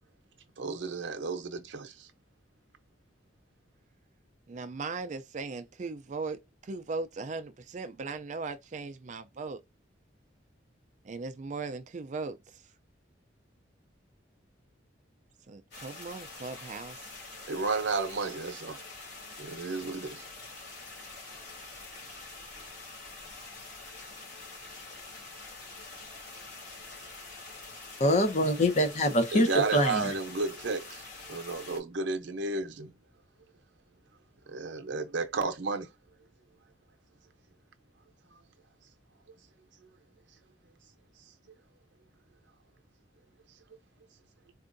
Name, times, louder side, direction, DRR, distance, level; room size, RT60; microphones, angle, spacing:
voice 1, 0.6-2.1 17.5-18.8 19.4-20.2 29.3-31.0 31.3-32.9 34.5-35.9, right 4 dB, 75° right, 0.7 m, -32 dB
voice 2, 4.5-9.6 11.0-12.6 15.5-17.1, right 4 dB, 40° right, 0.4 m, -38 dB
sound 1, 15.7-31.8, left 3 dB, 65° left, 2.5 m, -46 dB
voice 3, 28.0-30.1, equal, 40° left, 0.8 m, -24 dB
4.5 x 2.5 x 2.5 m
head